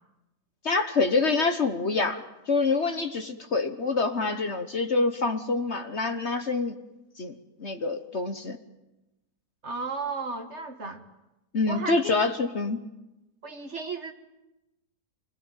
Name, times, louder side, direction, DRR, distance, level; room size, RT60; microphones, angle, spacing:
voice 1, 0.6-6.7 7.2-8.6 11.5-12.8, left 3 dB, 45° left, 7 dB, 1.3 m, -26 dB
voice 2, 9.6-11.0 11.7-12.1 13.4-14.1, right 3 dB, 45° right, 6 dB, 1.7 m, -34 dB
26.5 x 20.0 x 9.1 m, 0.99 s
omnidirectional pair, 1.8 m